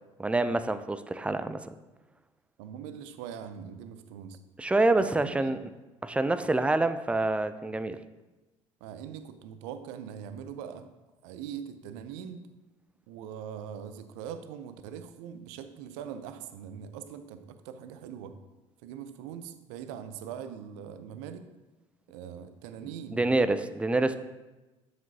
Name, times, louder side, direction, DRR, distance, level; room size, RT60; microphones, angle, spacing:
voice 1, 0.2-1.7 4.6-5.7 6.0-8.0 23.1-24.2, right 2 dB, 5° right, 12 dB, 0.4 m, -27 dB
voice 2, 2.6-4.4 5.0-5.6 8.8-10.9 11.2-12.5 13.1-18.4 18.8-21.5 22.1-23.2, right 8 dB, 70° right, 10 dB, 0.6 m, -42 dB
7.3 x 6.0 x 2.8 m, 1.1 s
hypercardioid pair, 60°, 16 cm